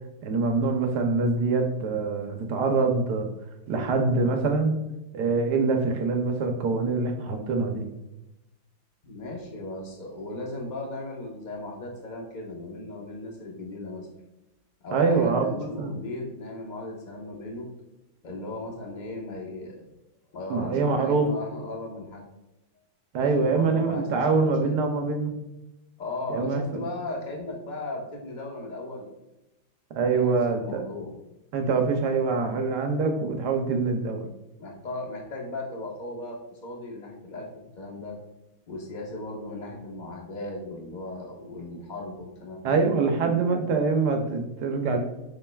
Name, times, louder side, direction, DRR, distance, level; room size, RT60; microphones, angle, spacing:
voice 1, 0.2-3.3 3.7-4.7 5.1-7.9 14.9-15.9 20.5-21.3 23.1-25.4 26.3-26.8 29.9-30.8 31.5-34.3 42.6-45.0, right 4 dB, 65° right, 4 dB, 1.2 m, -24 dB
voice 2, 9.0-14.1 14.8-17.7 18.2-19.9 20.3-22.3 23.2-24.7 26.0-29.1 30.0-31.1 34.6-38.2 38.7-42.9, left 2 dB, 30° left, 0 dB, 0.8 m, -37 dB
7.2 x 6.4 x 2.3 m, 0.95 s
omnidirectional pair, 2.1 m